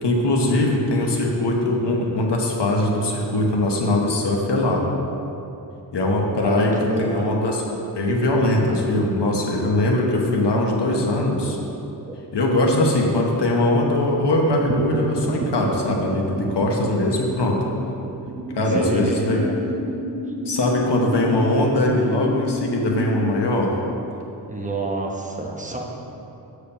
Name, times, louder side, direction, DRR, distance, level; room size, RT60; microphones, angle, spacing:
voice 1, 0.0-4.8 5.9-7.6 7.9-11.6 12.3-17.6 18.5-19.4 20.4-23.7, left 1 dB, 75° left, -1 dB, 1.1 m, -21 dB
voice 2, 6.4-7.4 12.0-12.2 18.7-19.6 24.5-25.8, right 2 dB, 20° right, 0 dB, 1.0 m, -29 dB
sound 1, 14.6-21.2, right 4 dB, 35° right, 0.6 m, -32 dB
sound 2, 18.3-23.3, equal, 80° right, 1.8 m, -29 dB
6.9 x 4.9 x 6.7 m, 2.9 s
wide cardioid pair, 80°, 42 cm